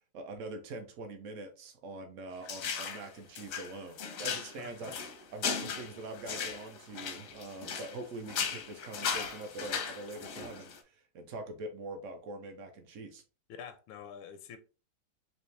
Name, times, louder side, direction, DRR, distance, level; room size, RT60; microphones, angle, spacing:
voice 1, 0.1-4.9 5.3-13.2, right 2 dB, 80° right, 0.6 m, -43 dB
sound 1, 2.5-3.1 3.4-8.0 8.3-10.8, left 6 dB, 65° left, 0.8 m, -37 dB
voice 2, 4.6-4.9 13.5-14.6, left 8 dB, 85° left, 1.4 m, -47 dB
4.1 x 2.7 x 3.2 m
omnidirectional pair, 2.2 m